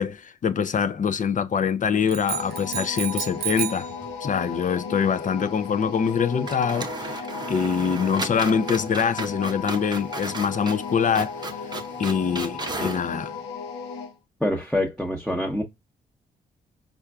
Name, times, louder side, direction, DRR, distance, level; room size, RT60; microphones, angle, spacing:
voice 1, 0.0-3.9 4.2-11.6 12.0-13.3, left 7 dB, 45° left, 0.5 m, -24 dB
sound 1, 2.1-3.9, right 12 dB, 65° right, 0.5 m, -31 dB
sound 2, 2.3-14.2, left 5 dB, 85° left, 0.8 m, -36 dB
sound 3, 3.3-4.2 4.4-4.5 6.0-6.2 6.4-13.1, right 3 dB, 25° right, 0.7 m, -35 dB
voice 2, 14.4-15.6, left 1 dB, ahead, 0.9 m, -25 dB
4.4 x 2.5 x 2.3 m
supercardioid pair, 50°, 18 cm